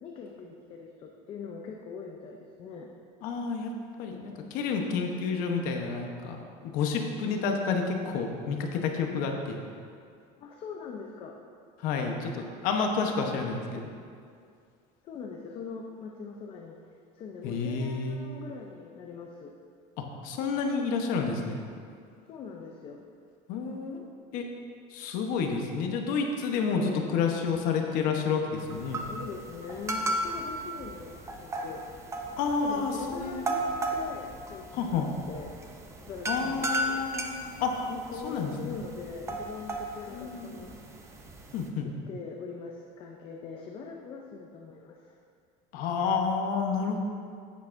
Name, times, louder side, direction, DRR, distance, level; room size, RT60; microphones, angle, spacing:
voice 1, 0.0-2.9 10.4-11.4 15.0-16.8 17.1-19.5 22.3-23.0 26.7-27.2 28.8-31.8 32.5-35.5 36.0-37.0 37.9-41.0 41.8-45.2, left 5 dB, 30° left, 1 dB, 0.6 m, -42 dB
voice 2, 3.2-3.7 4.0-6.4 6.6-9.6 11.8-13.9 17.4-18.2 20.0-21.6 23.5-24.1 24.3-24.5 24.9-29.1 32.4-33.5 34.7-35.1 36.2-37.7 38.2-38.8 40.1-40.7 41.5-41.9 45.7-47.0, left 5 dB, 55° left, 3 dB, 1.0 m, -30 dB
sound 1, 28.6-41.7, right 1 dB, 15° right, 0.6 m, -36 dB
10.0 x 8.4 x 2.6 m, 2.3 s
cardioid pair, 165°, 17 cm